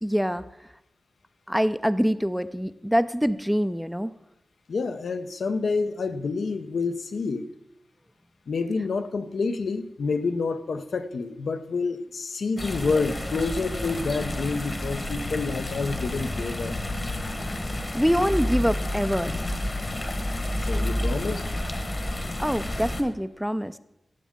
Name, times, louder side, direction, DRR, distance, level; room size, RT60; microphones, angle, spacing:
voice 1, 0.0-0.4 1.5-4.1 17.7-19.4 22.4-23.7, equal, ahead, 13 dB, 0.3 m, -25 dB
voice 2, 4.7-7.5 8.5-16.8 20.6-21.5, left 4 dB, 75° left, 9 dB, 0.6 m, -28 dB
sound 1, 12.6-23.0, left 1 dB, 30° left, 1.1 m, -30 dB
16.0 x 7.3 x 3.7 m, 0.89 s
wide cardioid pair, 115°, 0 cm